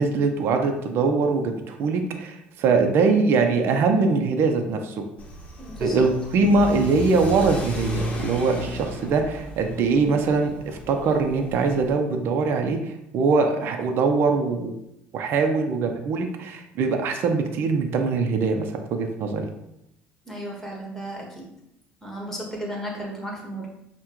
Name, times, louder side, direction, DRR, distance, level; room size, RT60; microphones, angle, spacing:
voice 1, 0.0-4.9 5.8-14.8 15.1-19.5, right 4 dB, 60° right, 4 dB, 0.5 m, -22 dB
Car / Accelerating revving vroom, 5.2-11.9, equal, 25° left, 0.9 m, -34 dB
voice 2, 5.6-6.0 20.3-21.4 22.0-23.7, right 1 dB, 10° left, -2 dB, 1.3 m, -34 dB
5.6 x 2.2 x 3.0 m, 0.82 s
cardioid pair, 105°, 4 cm